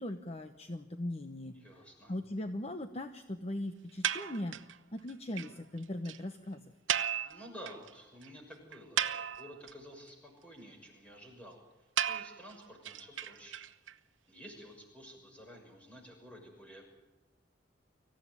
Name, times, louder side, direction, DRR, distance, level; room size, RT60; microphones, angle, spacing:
voice 1, 0.0-1.5 2.1-4.6 4.9-6.6, left 1 dB, 35° left, 7 dB, 1.0 m, -39 dB
voice 2, 1.5-2.1 7.2-11.6 12.1-13.6 14.3-16.8, equal, 5° left, 1 dB, 6.2 m, -51 dB
sound 1, 4.0-4.8 5.1-5.2 5.4-5.5 5.8-5.9 6.1-6.2 6.9-7.9 8.2-8.3 8.7-9.7 12.0-13.9, right 9 dB, 85° right, 0.9 m, -34 dB
25.5 x 15.5 x 9.7 m, 1.1 s
head